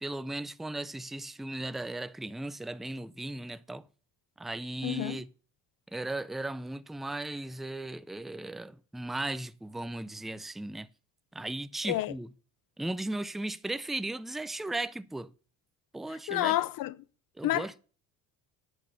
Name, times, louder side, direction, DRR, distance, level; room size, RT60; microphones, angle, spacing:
voice 1, 0.0-3.8 4.4-5.3 5.9-10.9 11.3-12.3 12.8-15.3 15.9-16.6 17.4-17.8, right 2 dB, ahead, 0.4 m, -36 dB
voice 2, 4.8-5.2 11.9-12.1 16.3-16.9 17.4-17.8, left 15 dB, 65° left, 0.7 m, -29 dB
10.0 x 6.3 x 6.6 m
cardioid pair, 125°, 36 cm